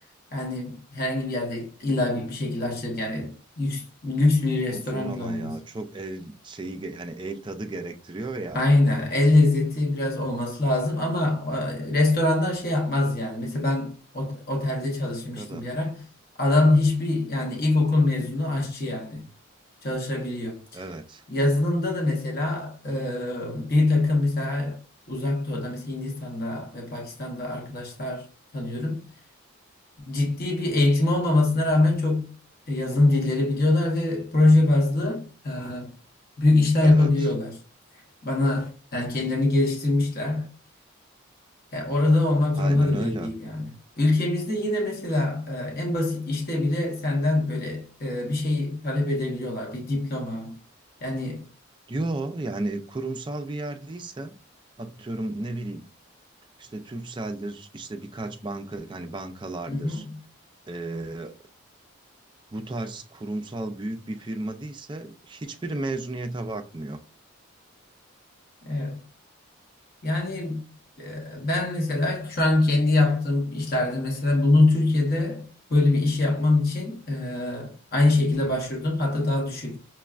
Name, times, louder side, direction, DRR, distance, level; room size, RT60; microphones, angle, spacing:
voice 1, 0.3-5.6 8.5-16.0 16.4-19.2 19.8-20.8 21.3-24.8 25.1-28.3 28.5-29.0 30.1-32.3 32.7-35.9 36.4-37.6 38.2-40.5 41.7-43.7 44.0-50.6 51.0-51.4 59.7-60.2 68.6-69.0 70.0-70.6 71.0-79.8, left 2 dB, 45° left, 0.8 m, -24 dB
voice 2, 4.7-8.6 15.4-15.7 20.7-21.2 36.8-37.1 42.5-43.3 51.9-54.4 54.8-55.8 56.6-60.1 60.7-61.4 62.5-67.0, right 2 dB, 20° right, 0.3 m, -34 dB
5.9 x 2.2 x 2.3 m
head